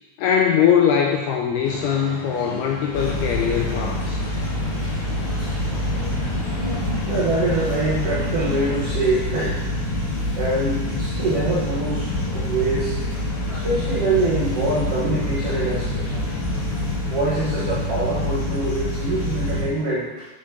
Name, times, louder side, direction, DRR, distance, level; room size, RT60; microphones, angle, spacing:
voice 1, 0.2-4.2, left 8 dB, 85° left, 0 dB, 2.3 m, -21 dB
sound 1, 1.6-8.8, left 1 dB, 45° left, 2.7 m, -36 dB
sound 2, 2.9-19.6, left 1 dB, 65° left, 4.8 m, -26 dB
voice 2, 7.1-9.6 10.2-12.1 12.3-12.9 13.5-16.2 17.0-20.2, right 2 dB, 80° right, -9 dB, 1.3 m, -24 dB
7.7 x 7.1 x 3.4 m, 1.2 s
omnidirectional pair, 5.1 m